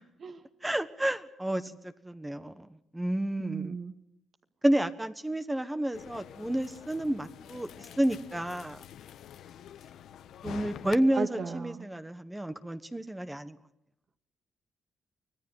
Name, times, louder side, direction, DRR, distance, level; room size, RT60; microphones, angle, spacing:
voice 1, 0.6-1.7 2.0-2.7 2.9-3.8 4.6-8.8 10.4-13.6, right 1 dB, 10° right, 10 dB, 1.3 m, -30 dB
voice 2, 3.4-3.9 11.1-11.9, right 5 dB, 50° right, 7 dB, 1.9 m, -35 dB
sound 1, 5.9-11.0, left 10 dB, 75° left, 1.1 m, -47 dB
24.5 x 18.0 x 9.4 m, 0.80 s
cardioid pair, 90°, 0 cm